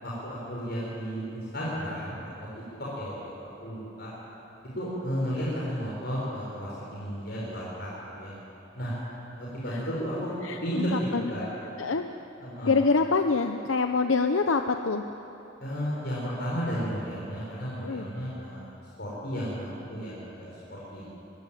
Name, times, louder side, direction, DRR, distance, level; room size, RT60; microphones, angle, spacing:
voice 1, 0.0-2.3 3.0-3.1 3.4-4.1 4.7-7.9 8.2-8.3 8.7-8.9 9.4-10.3 10.6-11.4 12.4-12.7 15.6-21.0, equal, 55° left, -7 dB, 5.4 m, -33 dB
voice 2, 10.4-11.3 11.8-12.0 12.6-15.0 17.8-18.1, left 4 dB, 80° left, 6 dB, 0.7 m, -26 dB
24.5 x 15.0 x 9.1 m, 3.0 s
head